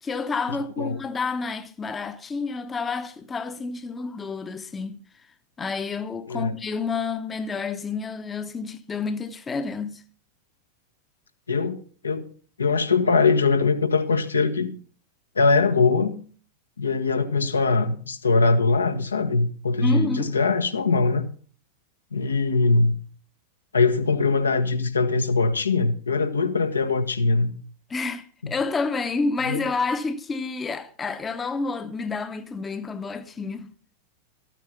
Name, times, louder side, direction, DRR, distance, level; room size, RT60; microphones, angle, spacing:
voice 1, 0.0-5.0 5.6-10.0 19.8-20.3 27.9-33.7, left 4 dB, 15° left, 1.0 m, -29 dB
voice 2, 11.5-12.3 12.6-14.7 15.3-16.2 16.8-21.2 22.1-22.9 23.7-27.5 29.5-29.6, left 4 dB, 75° left, 1.5 m, -22 dB
13.5 x 9.3 x 5.9 m
figure-of-eight pair, 90°, 0 cm